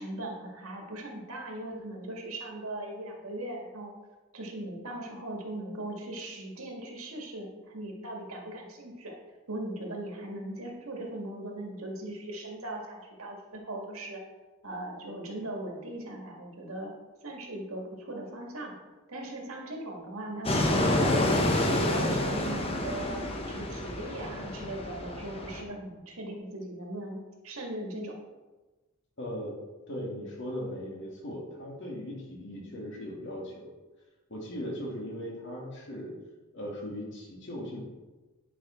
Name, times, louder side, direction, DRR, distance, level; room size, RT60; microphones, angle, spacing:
voice 1, 0.0-3.9 4.3-9.1 9.5-14.2 14.6-16.9 17.2-18.7 19.1-23.2 23.5-28.2, right 1 dB, 85° right, 0 dB, 1.9 m, -39 dB
Fixed-wing aircraft airplane, 20.4-25.6, left 1 dB, 25° left, 1.0 m, -28 dB
voice 2, 29.2-29.6 29.9-33.7 34.3-36.1 36.5-37.8, equal, 60° left, -3 dB, 2.6 m, -38 dB
10.0 x 5.6 x 4.3 m, 1.2 s
head